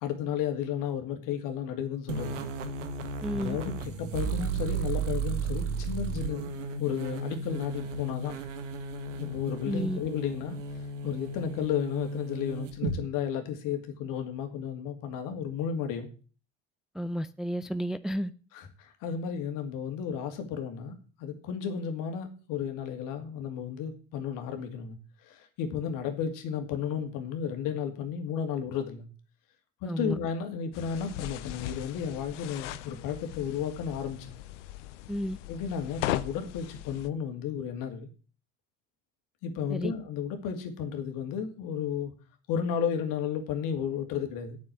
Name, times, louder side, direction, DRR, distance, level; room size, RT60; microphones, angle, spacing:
voice 1, 0.0-2.5 3.3-6.5 6.8-8.4 9.2-16.1 18.5-25.0 25.2-29.1 29.8-34.3 35.5-38.1 39.4-42.1 42.5-44.6, left 8 dB, 60° left, 2.5 m, -33 dB
sound 1, 2.1-13.0, right 4 dB, 85° right, 1.5 m, -34 dB
voice 2, 3.2-3.6 9.7-10.0 16.9-18.3 29.9-30.2 35.1-35.4 39.7-39.9, equal, ahead, 0.5 m, -32 dB
sound 2, 30.7-37.1, left 14 dB, 75° left, 0.8 m, -38 dB
8.9 x 6.9 x 8.2 m
hypercardioid pair, 70°, 36 cm